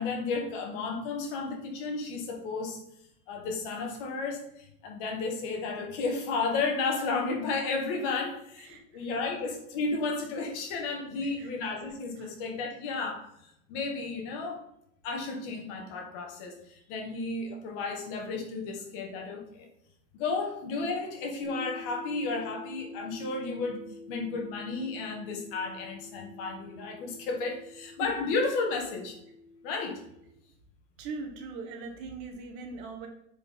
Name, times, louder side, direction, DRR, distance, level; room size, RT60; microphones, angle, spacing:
voice 1, 0.0-2.8 3.3-13.3 13.7-14.6 15.0-19.7 20.1-29.2 29.6-30.0, left 4 dB, 50° left, 2 dB, 2.0 m, -33 dB
voice 2, 8.6-9.1 11.2-11.5 12.2-12.3 28.0-28.1 31.0-33.1, right 4 dB, 40° right, 4 dB, 1.4 m, -41 dB
sound 1, 21.4-30.3, left 3 dB, ahead, 1.8 m, -48 dB
9.5 x 4.9 x 3.9 m, 0.78 s
supercardioid pair, 170°, 36 cm